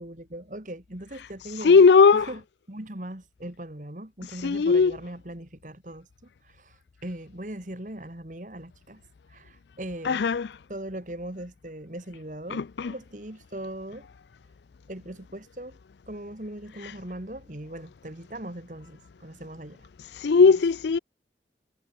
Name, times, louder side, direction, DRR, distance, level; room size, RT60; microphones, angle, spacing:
voice 1, 0.0-1.8 2.1-2.4 2.7-6.1 6.4-9.0 9.3-10.2 10.7-14.1 14.9-15.8 16.1-19.9, right 1 dB, 45° right, 2.3 m, -39 dB
voice 2, 1.6-2.3 4.4-5.0 10.0-10.5 12.5-12.9 20.2-21.0, left 5 dB, 75° left, 0.4 m, -18 dB
head